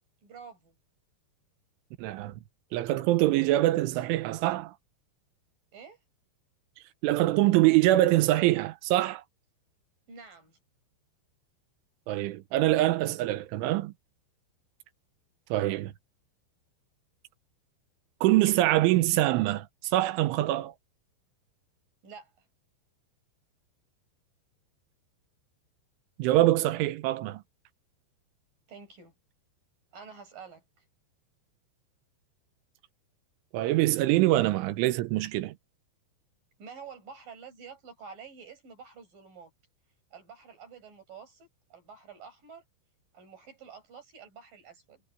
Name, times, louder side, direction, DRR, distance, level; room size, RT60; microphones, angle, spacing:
voice 1, 0.2-0.7 5.7-6.0 10.1-10.6 22.0-22.5 28.7-29.1 29.9-30.6 36.6-39.5 40.1-42.6 43.1-45.0, right 6 dB, 45° right, 8.1 m, -48 dB
voice 2, 2.0-2.4 2.7-4.8 7.0-9.2 12.1-13.9 15.5-15.9 18.2-20.7 26.2-27.4 33.5-35.6, right 16 dB, 85° right, 3.5 m, -24 dB
omnidirectional pair, 5.4 m